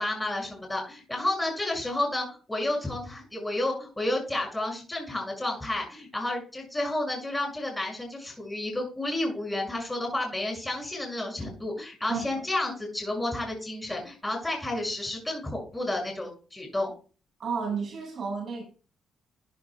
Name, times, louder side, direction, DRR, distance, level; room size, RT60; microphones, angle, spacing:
voice 1, 0.0-16.9, left 1 dB, 10° left, 6.3 m, -31 dB
voice 2, 12.1-12.4 17.4-18.6, right 5 dB, 55° right, 5.7 m, -32 dB
13.0 x 10.0 x 2.3 m
cardioid pair, 90°, 0 cm